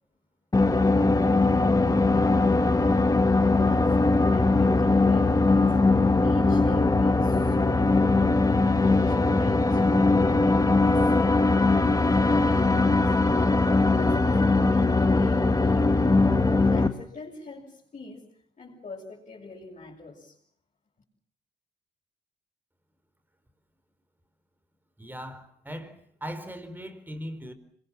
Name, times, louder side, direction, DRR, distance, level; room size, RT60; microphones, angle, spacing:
sound 1, 0.5-16.9, left 3 dB, 20° left, 1.8 m, -21 dB
voice 1, 3.6-4.0 4.3-5.8 6.2-8.3 8.6-10.2 10.5-13.2 13.6-16.1 16.7-18.3 18.6-20.4, left 3 dB, 40° left, 7.9 m, -43 dB
voice 2, 25.0-27.5, equal, 10° right, 4.6 m, -39 dB
26.5 x 23.5 x 7.5 m
cardioid pair, 95°, 18 cm